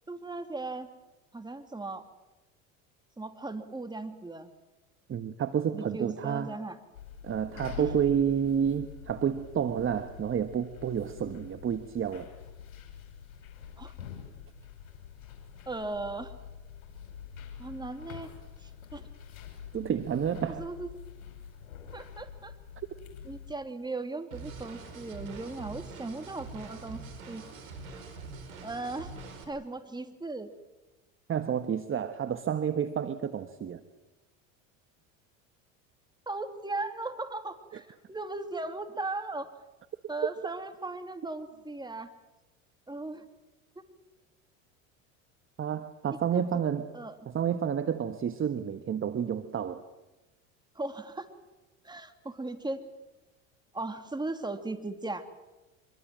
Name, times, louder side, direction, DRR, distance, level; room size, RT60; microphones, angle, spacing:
voice 1, 0.1-0.9 1.3-2.0 3.2-4.5 5.7-6.8 7.8-7.9 13.8-13.9 15.7-16.3 17.6-18.3 18.6-19.1 20.6-20.9 21.9-22.5 23.2-27.5 28.6-29.1 29.5-30.5 36.3-39.5 40.1-42.1 42.9-43.2 46.3-46.6 46.9-47.2 50.7-51.3 51.8-52.8 53.7-55.2, right 2 dB, 10° right, 7 dB, 2.9 m, -37 dB
voice 2, 5.1-6.5 7.2-12.3 19.7-20.6 31.3-33.8 45.6-46.9 47.3-49.8, right 8 dB, 30° right, 10 dB, 1.4 m, -30 dB
sound 1, 6.9-23.5, left 8 dB, 80° left, 5.7 m, -46 dB
sound 2, 24.3-29.4, right 4 dB, 80° right, 5.1 m, -44 dB
25.0 x 23.0 x 7.7 m, 1.1 s
hypercardioid pair, 80°, 41 cm